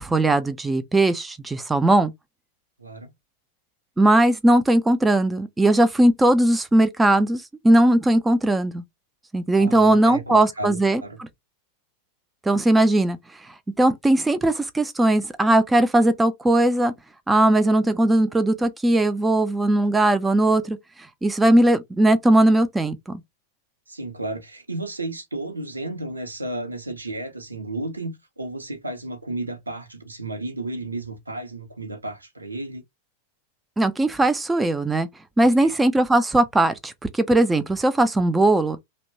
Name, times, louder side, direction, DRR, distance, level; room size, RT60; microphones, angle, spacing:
voice 1, 0.0-2.1 4.0-8.8 9.3-11.3 12.4-13.2 13.8-16.9 17.3-20.8 21.2-23.2 33.8-35.1 35.4-38.8, right 1 dB, 10° right, 0.3 m, -19 dB
voice 2, 2.8-3.1 9.6-11.2 23.9-32.8 35.4-35.8, right 2 dB, 80° right, 0.7 m, -33 dB
2.8 x 2.1 x 2.7 m
figure-of-eight pair, 90°, 0 cm